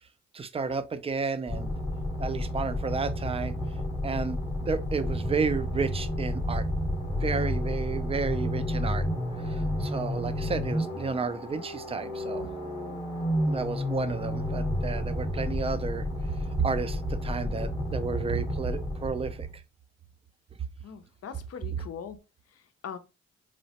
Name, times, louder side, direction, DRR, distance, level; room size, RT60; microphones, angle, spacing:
voice 1, 0.3-1.7 2.2-3.5 4.0-6.7 7.2-9.1 9.4-12.5 13.5-19.6, right 5 dB, 20° right, 0.3 m, -32 dB
sound 1, 1.5-19.5, left 1 dB, 20° left, 0.8 m, -31 dB
voice 2, 20.8-22.2 22.5-23.0, left 7 dB, 55° left, 0.5 m, -41 dB
3.0 x 2.0 x 2.8 m
cardioid pair, 65°, 29 cm